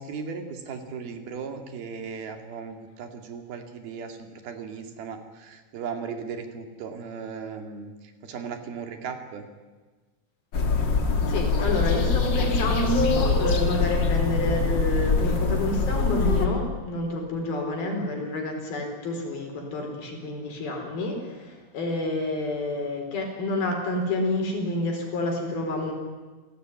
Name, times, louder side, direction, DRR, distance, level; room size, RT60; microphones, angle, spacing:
voice 1, 0.0-7.9 8.2-9.5, right 6 dB, 85° right, 6 dB, 4.2 m, -37 dB
sound 1, 10.5-16.5, left 4 dB, 35° left, 2.2 m, -24 dB
voice 2, 11.3-25.9, left 1 dB, 90° left, 2 dB, 6.4 m, -28 dB
27.5 x 17.0 x 9.5 m, 1.3 s
omnidirectional pair, 4.2 m